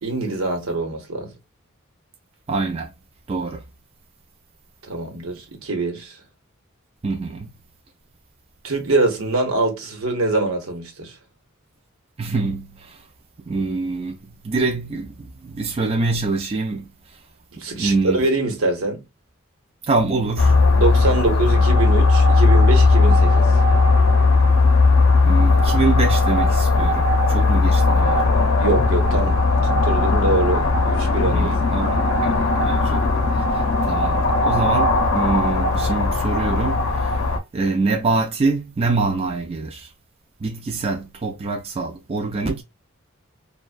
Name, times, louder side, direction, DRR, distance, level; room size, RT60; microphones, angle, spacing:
voice 1, 0.0-1.3 4.9-6.2 8.6-11.1 17.6-19.0 20.8-23.5 28.6-29.4 29.8-31.5, right 2 dB, 90° right, 0.9 m, -23 dB
voice 2, 2.5-2.9 3.3-3.6 7.0-7.5 12.2-13.0 13.5-16.9 17.6-18.3 19.8-20.7 25.2-28.5 31.2-33.0 33.3-37.1 37.5-39.9 40.4-42.6, right 3 dB, 30° right, 0.4 m, -25 dB
sound 1, 20.4-37.4, left 3 dB, 80° left, 0.6 m, -17 dB
2.3 x 2.2 x 2.4 m
head